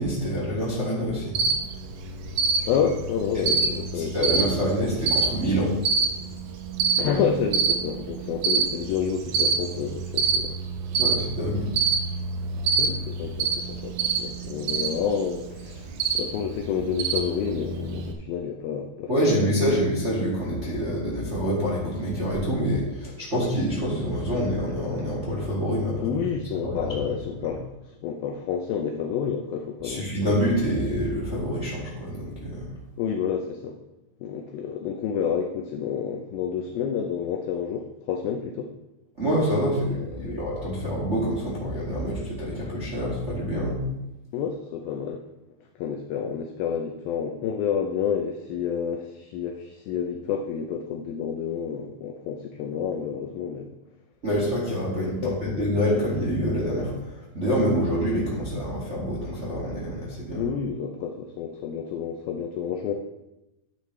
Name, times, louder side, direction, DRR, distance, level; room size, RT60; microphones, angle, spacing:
voice 1, 0.0-1.3 4.0-5.7 11.0-11.7 19.1-26.2 26.6-26.9 29.8-32.6 39.2-43.8 54.2-56.9 57.3-60.4, equal, 25° right, -6 dB, 1.5 m, -26 dB
Cricket, 1.4-18.1, right 5 dB, 75° right, 2.7 m, -27 dB
voice 2, 2.6-4.5 7.0-10.6 12.8-19.8 26.0-27.6 28.0-30.5 33.0-33.8 34.2-38.7 39.8-40.4 44.3-45.2 45.8-53.7 55.2-55.7 60.3-62.9, left 7 dB, 90° left, 4 dB, 2.0 m, -29 dB
12.5 x 8.3 x 3.2 m, 0.95 s
omnidirectional pair, 5.0 m